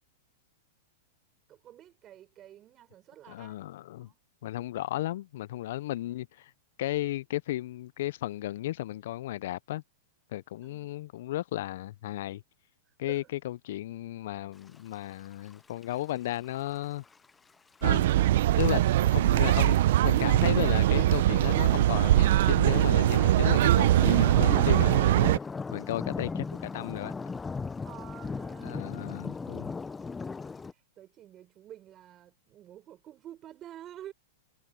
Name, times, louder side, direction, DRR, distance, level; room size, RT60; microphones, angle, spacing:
voice 1, 1.5-3.6 4.0-4.2 10.6-10.9 13.1-13.3 27.8-28.8 30.7-34.1, right 12 dB, 30° right, 4.6 m, -49 dB
voice 2, 3.3-4.1 4.4-6.5 6.8-9.8 10.3-12.4 13.0-17.0 17.8-18.1 18.6-24.9 25.2-25.3 25.7-27.1 28.6-29.7, left 15 dB, 65° left, 0.4 m, -34 dB
sound 1, 15.5-15.6 15.8-15.9 16.6-17.1 17.9-18.0 18.2-18.3 18.7-19.7 20.2-30.7, left 4 dB, 10° left, 0.5 m, -38 dB
sound 2, 17.8-25.4, right 14 dB, 65° right, 0.5 m, -22 dB
hypercardioid pair, 130°, 0 cm